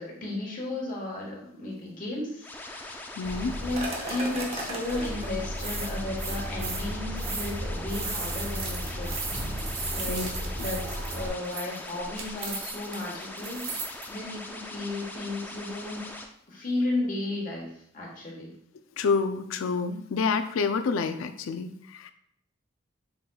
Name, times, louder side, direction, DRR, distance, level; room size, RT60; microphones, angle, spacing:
voice 1, 0.0-3.0 3.6-9.1 9.9-10.3 10.5-16.0 16.5-17.7 17.9-18.5, left 2 dB, 40° left, -2 dB, 1.2 m, -34 dB
sound 1, 2.4-16.2, left 2 dB, 10° left, 0.3 m, -41 dB
voice 2, 3.2-3.6 10.1-10.3 10.6-10.8 19.0-22.1, left 5 dB, 90° left, 9 dB, 0.4 m, -28 dB
sound 2, 3.2-11.3, right 1 dB, 30° right, 0.8 m, -34 dB
sound 3, 7.7-14.0, right 4 dB, 75° right, 1.0 m, -38 dB
5.8 x 3.8 x 2.3 m, 0.71 s
head